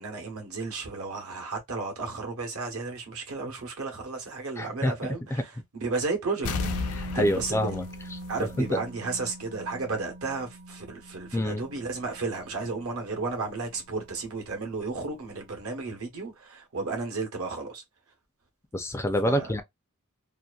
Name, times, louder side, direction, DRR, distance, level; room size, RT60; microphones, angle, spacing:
voice 1, 0.0-6.5 7.1-7.6 8.3-17.8 19.2-19.5, right 3 dB, 70° right, 1.0 m, -33 dB
voice 2, 4.6-4.9 5.3-5.4 6.9-7.8 8.1-8.8 11.3-11.6 18.7-19.6, equal, 10° left, 0.4 m, -27 dB
Musical instrument, 6.4-14.3 14.6-14.8, right 1 dB, 50° right, 1.1 m, -42 dB
sound 1, 6.5-9.1 9.4-9.5, left 4 dB, 80° left, 0.5 m, -34 dB
2.7 x 2.4 x 2.3 m
head